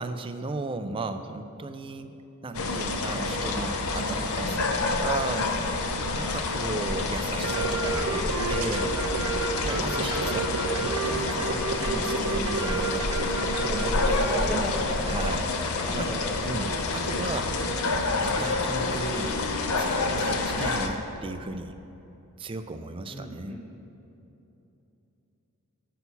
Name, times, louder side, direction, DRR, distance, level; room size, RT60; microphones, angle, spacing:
voice 1, 0.0-2.2 2.4-5.8 6.1-9.0 9.6-13.3 13.7-14.7 15.0-16.1 16.4-17.5 18.2-19.4 19.8-21.8 22.4-23.6, right 3 dB, 25° right, 9 dB, 0.4 m, -36 dB
sound 1, 2.5-20.9, left 3 dB, 70° left, 0.7 m, -28 dB
sound 2, 7.4-14.3, right 4 dB, 90° right, 0.7 m, -30 dB
voice 2, 10.0-10.4 14.2-15.1 15.8-16.3 23.1-23.7, left 1 dB, 5° left, -3 dB, 1.2 m, -36 dB
8.3 x 6.2 x 5.5 m, 2.9 s
head